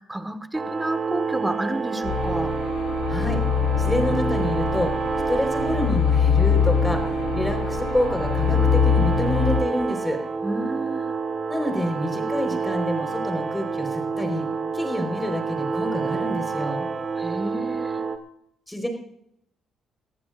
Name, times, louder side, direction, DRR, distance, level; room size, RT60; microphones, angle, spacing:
voice 1, 0.0-2.5 10.4-11.1 17.2-18.0, right 1 dB, 10° right, 10 dB, 1.6 m, -30 dB
sound 1, 0.5-18.2, right 5 dB, 40° right, 1.6 m, -28 dB
sound 2, 2.0-9.6, left 7 dB, 80° left, 4.0 m, -23 dB
voice 2, 3.1-3.4 3.8-4.9 5.3-10.2 11.5-14.5 14.7-16.9 18.7-18.9, equal, 10° left, 4 dB, 4.5 m, -27 dB
21.0 x 14.5 x 2.6 m, 0.72 s
cardioid pair, 90°, 0 cm